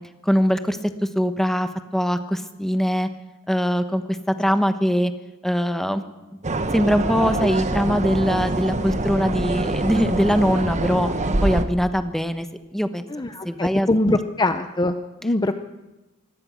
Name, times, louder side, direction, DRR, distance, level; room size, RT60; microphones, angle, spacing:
voice 1, 0.2-0.8 1.1-3.1 3.5-5.1 5.4-6.0 6.7-11.1 11.4-12.5 12.7-13.0 13.4-14.1, equal, ahead, 9 dB, 1.1 m, -22 dB
sound 1, 6.4-11.6, right 2 dB, 35° right, 1.3 m, -24 dB
voice 2, 13.1-14.9 15.2-15.5, left 2 dB, 20° left, 8 dB, 0.7 m, -22 dB
24.0 x 17.5 x 6.3 m, 1.1 s
head